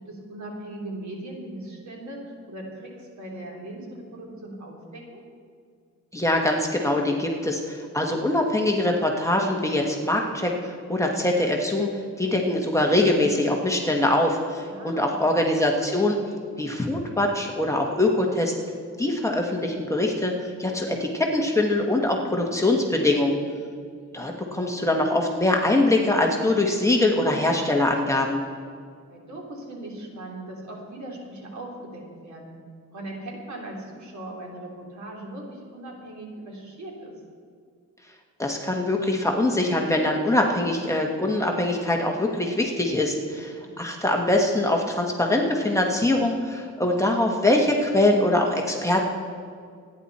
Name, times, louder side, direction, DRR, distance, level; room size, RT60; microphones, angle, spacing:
voice 1, 0.1-5.2 14.6-15.2 24.1-24.3 29.1-32.5 32.9-37.1 43.3-43.7, right 1 dB, 70° right, -2 dB, 3.7 m, -39 dB
voice 2, 6.1-16.2 16.6-18.5 19.0-23.3 24.1-28.4 38.4-49.0, left 1 dB, 10° left, 0 dB, 1.4 m, -23 dB
25.5 x 10.5 x 4.3 m, 2.1 s
wide cardioid pair, 140°, 30 cm